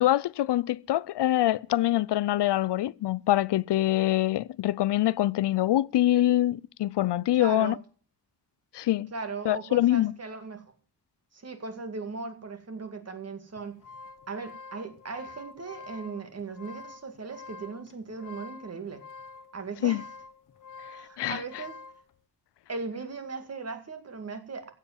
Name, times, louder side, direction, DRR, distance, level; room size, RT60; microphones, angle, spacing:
voice 1, 0.0-7.7 8.7-9.1 9.5-10.1 19.8-20.0 21.2-21.4, left 14 dB, 85° left, 0.6 m, -24 dB
voice 2, 7.3-7.8 9.1-10.6 11.3-13.8 14.3-19.0 19.5-20.1 20.9-21.8 22.7-24.7, right 4 dB, 40° right, 2.1 m, -38 dB
sound 1, 13.6-22.0, left 4 dB, 50° left, 1.2 m, -47 dB
15.5 x 7.7 x 7.3 m
wide cardioid pair, 165°, 40 cm